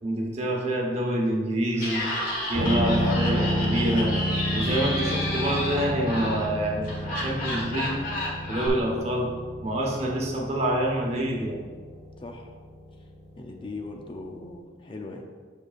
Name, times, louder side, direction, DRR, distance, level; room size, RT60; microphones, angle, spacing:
voice 1, 0.0-2.1 2.5-4.1 4.5-8.0 8.5-9.3 9.6-11.7, right 1 dB, 35° right, -1 dB, 1.1 m, -27 dB
Laughter, 1.7-8.7, left 1 dB, 50° left, 1.4 m, -31 dB
sound 1, 2.5-14.1 14.4-14.5, equal, 65° right, 1.1 m, -31 dB
voice 2, 12.2-12.5 13.4-15.2, left 3 dB, 30° left, 2 dB, 0.5 m, -39 dB
7.6 x 6.2 x 2.4 m, 1.5 s
head